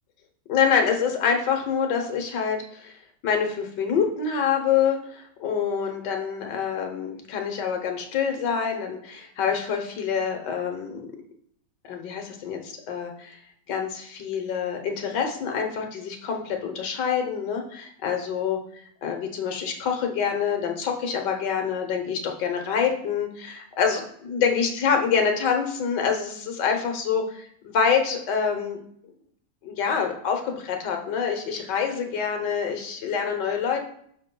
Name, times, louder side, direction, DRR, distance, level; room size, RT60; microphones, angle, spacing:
voice 1, 0.5-2.9 3.2-11.1 11.8-13.4 13.7-18.6 19.0-28.8 29.6-33.9, left 6 dB, 80° left, 4 dB, 1.7 m, -26 dB
12.0 x 5.1 x 2.3 m, 0.65 s
omnidirectional pair, 1.8 m